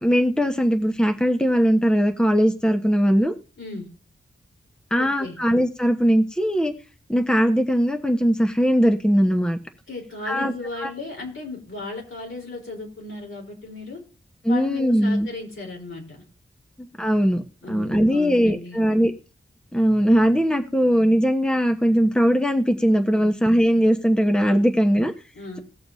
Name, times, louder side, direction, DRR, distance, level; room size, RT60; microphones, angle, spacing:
voice 1, 0.0-3.3 4.9-6.7 7.1-9.6 10.3-10.5 10.8-10.9 14.4-15.3 17.0-17.4 17.7-19.1 19.7-25.1, equal, 5° left, 5 dB, 1.1 m, -20 dB
voice 2, 3.6-3.9 5.0-5.4 9.9-14.0 14.5-16.2 17.6-18.8 23.2-23.3 25.3-25.6, left 2 dB, 75° left, 0 dB, 3.9 m, -35 dB
19.0 x 7.0 x 2.7 m, 0.34 s
wide cardioid pair, 80°, 21 cm